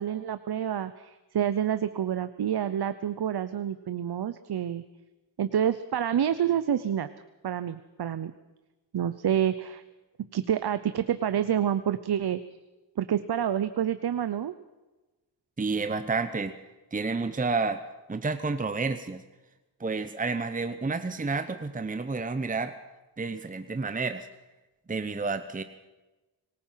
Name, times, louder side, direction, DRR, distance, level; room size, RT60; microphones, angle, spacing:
voice 1, 0.0-4.8 5.4-7.1 7.4-8.3 8.9-9.8 10.3-12.4 13.0-14.5, right 9 dB, 60° right, 12 dB, 0.9 m, -28 dB
voice 2, 15.6-16.5 16.9-17.8 18.1-19.2 19.8-22.7 23.2-24.3 24.9-25.6, right 4 dB, 20° right, 10 dB, 0.9 m, -30 dB
25.5 x 19.0 x 5.8 m, 1.1 s
wide cardioid pair, 120°, 44 cm